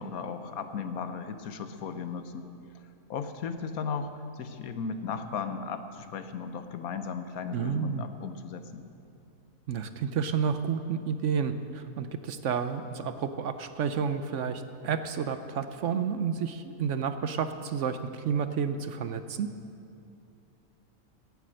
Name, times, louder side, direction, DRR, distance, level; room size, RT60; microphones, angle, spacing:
voice 1, 0.0-2.5 3.1-8.8, left 5 dB, 75° left, 9 dB, 1.3 m, -36 dB
voice 2, 7.5-8.0 9.7-19.5, right 7 dB, 65° right, 10 dB, 0.9 m, -30 dB
17.0 x 8.5 x 7.6 m, 2.6 s
omnidirectional pair, 1.5 m